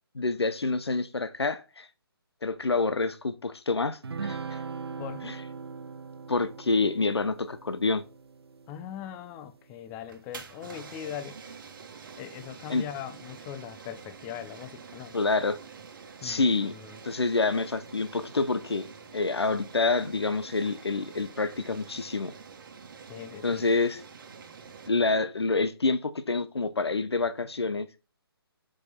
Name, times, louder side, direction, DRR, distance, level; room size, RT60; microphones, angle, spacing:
voice 1, 0.1-1.9 2.4-4.6 5.2-5.4 6.3-8.0 12.7-12.8 15.1-15.6 16.2-16.8 17.0-18.9 19.1-22.3 23.4-24.0 24.9-27.9, left 3 dB, 85° left, 0.7 m, -27 dB
sound 1, 4.0-9.7, right 5 dB, 75° right, 0.6 m, -40 dB
voice 2, 5.0-5.3 8.7-11.6 12.2-15.2 16.2-17.0 23.1-23.7, left 10 dB, 15° left, 0.5 m, -40 dB
sound 2, 10.0-24.9, right 5 dB, 55° right, 1.3 m, -47 dB
6.3 x 5.1 x 4.2 m
figure-of-eight pair, 140°, 13 cm